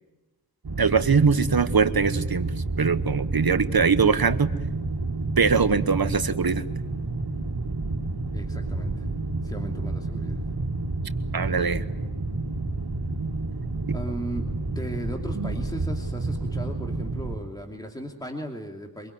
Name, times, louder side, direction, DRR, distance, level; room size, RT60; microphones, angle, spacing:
sound 1, 0.6-17.4, right 2 dB, 85° right, 2.3 m, -30 dB
voice 1, 0.8-4.5 5.4-6.6 11.3-11.9 15.4-15.5, right 5 dB, 70° right, 12 dB, 1.1 m, -22 dB
voice 2, 8.3-9.1 9.4-10.4 13.9-14.5 14.7-19.1, right 1 dB, 10° left, 2 dB, 2.8 m, -36 dB
24.5 x 23.0 x 9.4 m, 1.1 s
wide cardioid pair, 60°, 38 cm